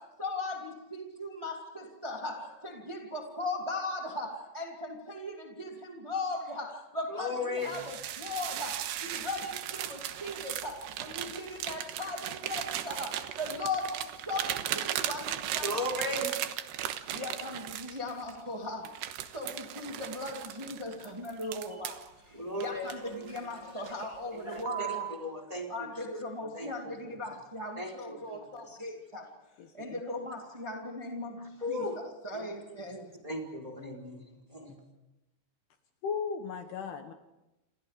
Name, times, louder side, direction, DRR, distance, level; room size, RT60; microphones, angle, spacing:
voice 1, 0.0-16.3 17.1-25.1 25.7-29.3 29.7-31.8 32.2-33.2, left 2 dB, 25° right, 1 dB, 0.6 m, -38 dB
voice 2, 7.1-7.8 15.6-16.3 22.3-23.8 24.3-25.7 26.0-26.1 26.5-26.7 27.0-27.1 27.8-28.4 28.7-28.8 31.6-32.5 33.2-34.2 34.5-34.8, left 1 dB, 10° right, 2 dB, 3.9 m, -37 dB
sound 1, 7.6-18.4 18.9-22.1 22.6-23.5 23.9-24.2 24.6-25.2, right 11 dB, 70° right, 3.1 m, -37 dB
voice 3, 29.6-30.0 36.0-37.1, left 6 dB, 70° left, 6 dB, 2.9 m, -36 dB
28.5 x 27.5 x 5.1 m, 0.96 s
omnidirectional pair, 5.4 m